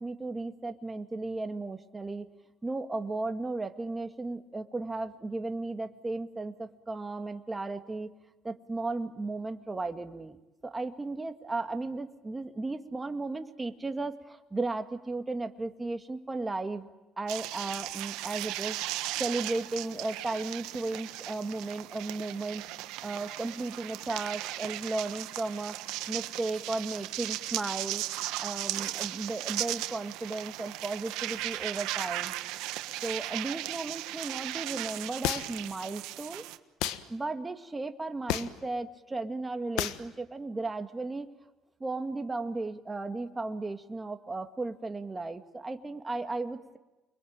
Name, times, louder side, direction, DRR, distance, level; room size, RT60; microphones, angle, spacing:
voice 1, 0.0-2.3 2.6-8.1 8.4-10.4 10.6-16.9 17.2-18.8 19.2-22.6 23.0-25.8 26.1-28.0 28.4-32.3 33.0-36.4 37.1-41.3 41.8-46.8, right 3 dB, 15° right, 6 dB, 1.9 m, -35 dB
sound 1, 17.3-36.6, right 16 dB, 85° right, 1.3 m, -37 dB
sound 2, 35.2-35.7 36.8-37.0 38.3-38.6 39.8-40.0, left 12 dB, 85° left, 1.4 m, -30 dB
29.5 x 22.5 x 8.9 m, 1.1 s
cardioid pair, 105°, 0 cm